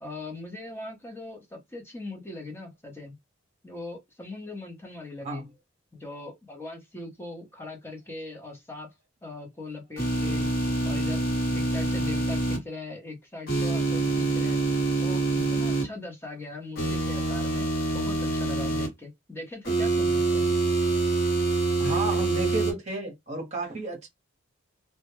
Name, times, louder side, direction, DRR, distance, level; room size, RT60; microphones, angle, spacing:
voice 1, 0.0-3.2 3.6-5.4 5.9-8.9 9.2-10.5 10.8-11.2 11.5-14.6 15.0-20.4, left 2 dB, 10° left, 0.7 m, -40 dB
sound 1, 10.0-12.6 13.5-15.8 16.8-18.9 19.6-22.7, right 2 dB, 50° left, 1.0 m, -26 dB
voice 2, 21.8-24.1, right 3 dB, 35° right, 0.8 m, -32 dB
2.1 x 2.1 x 2.9 m
head